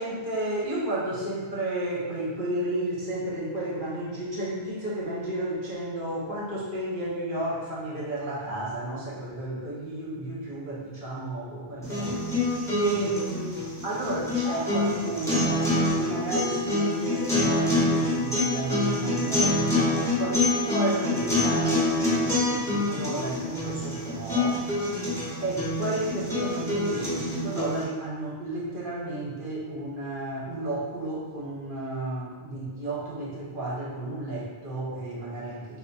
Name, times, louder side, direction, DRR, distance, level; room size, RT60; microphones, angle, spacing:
voice 1, 0.0-12.3 12.7-13.6 13.8-24.6 25.4-35.8, right 1 dB, 60° right, -6 dB, 0.9 m, -32 dB
sound 1, 11.8-27.8, left 2 dB, 5° left, 0.9 m, -26 dB
3.4 x 2.2 x 4.0 m, 1.4 s
omnidirectional pair, 1.1 m